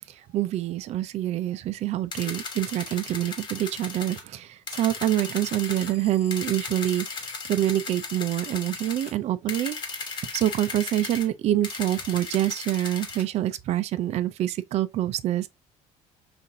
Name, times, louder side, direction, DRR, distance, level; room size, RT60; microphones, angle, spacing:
voice 1, 0.1-15.5, right 13 dB, 50° right, 0.5 m, -26 dB
sound 1, 2.1-4.2 4.7-5.9 6.3-9.1 9.5-11.3 11.6-13.2, left 4 dB, 30° left, 1.1 m, -36 dB
sound 2, 5.2-9.2, left 7 dB, 60° left, 1.0 m, -47 dB
5.6 x 2.5 x 2.7 m
cardioid pair, 145°, 14 cm